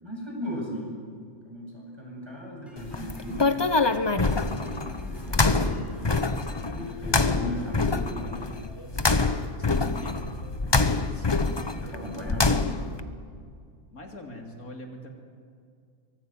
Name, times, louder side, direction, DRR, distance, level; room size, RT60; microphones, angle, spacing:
voice 1, 0.0-0.9 1.4-3.7 4.3-5.9 6.3-8.5 11.8-12.8, left 1 dB, 20° right, -2 dB, 8.0 m, -37 dB
sound 1, 2.7-8.8, equal, ahead, 6.6 m, -53 dB
sound 2, 2.8-13.0, left 3 dB, 20° left, 0.8 m, -26 dB
sound 3, 3.4-11.3, equal, 55° left, 3.0 m, -45 dB
voice 2, 9.7-10.3 10.8-11.7 13.9-15.2, left 1 dB, 85° left, 2 dB, 3.4 m, -42 dB
24.5 x 23.0 x 9.2 m, 2.2 s
omnidirectional pair, 1.5 m